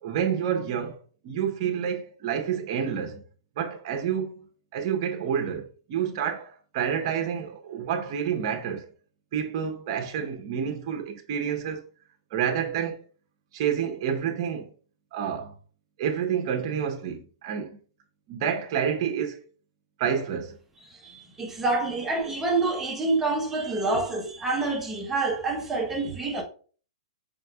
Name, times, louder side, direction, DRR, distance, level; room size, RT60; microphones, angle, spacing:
voice 1, 0.0-1.0 1.2-3.2 3.6-4.4 4.7-8.9 9.3-11.8 12.3-13.0 13.5-14.7 15.1-15.5 16.0-17.8 18.3-19.4 20.0-20.6, right 8 dB, 50° right, 1.0 m, -29 dB
voice 2, 20.9-26.4, right 3 dB, 15° right, 1.0 m, -27 dB
5.1 x 3.5 x 2.4 m
hypercardioid pair, 130°, 3 cm